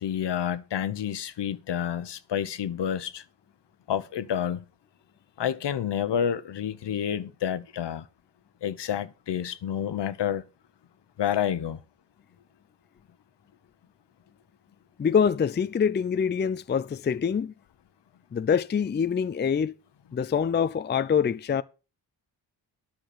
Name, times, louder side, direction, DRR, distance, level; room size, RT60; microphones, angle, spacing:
voice 1, 0.0-3.2 3.9-4.6 5.4-8.0 8.6-10.4 11.2-11.8, left 9 dB, 70° left, 0.9 m, -29 dB
voice 2, 15.0-17.5 18.3-19.7 20.1-21.6, left 7 dB, 25° left, 0.4 m, -25 dB
10.0 x 5.9 x 6.6 m
cardioid pair, 75°, 44 cm